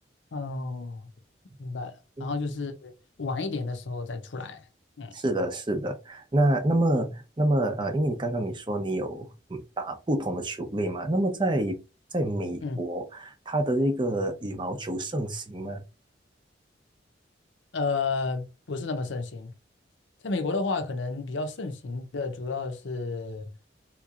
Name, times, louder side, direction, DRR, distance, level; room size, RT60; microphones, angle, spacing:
voice 1, 0.3-1.1 1.6-2.9 3.2-4.6 5.0-5.2 12.6-12.8 17.7-19.5 20.2-23.5, left 3 dB, 80° left, 0.6 m, -31 dB
voice 2, 5.1-11.8 12.1-15.8, right 1 dB, 25° right, 0.6 m, -27 dB
3.6 x 3.0 x 2.4 m
head